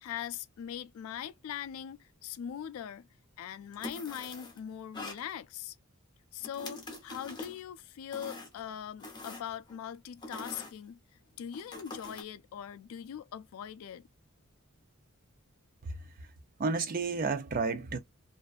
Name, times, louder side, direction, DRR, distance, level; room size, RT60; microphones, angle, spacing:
voice 1, 0.0-3.1 3.4-5.8 6.3-11.0 11.4-14.1, left 9 dB, 75° left, 0.3 m, -41 dB
sound 1, 3.7-4.6 4.9-5.2 6.4-7.6 8.1-8.6 9.0-9.8 10.2-10.7 11.5-12.2, left 2 dB, 20° left, 0.8 m, -44 dB
voice 2, 15.8-16.3 16.6-18.0, right 4 dB, 40° right, 0.5 m, -32 dB
2.5 x 2.2 x 2.3 m
head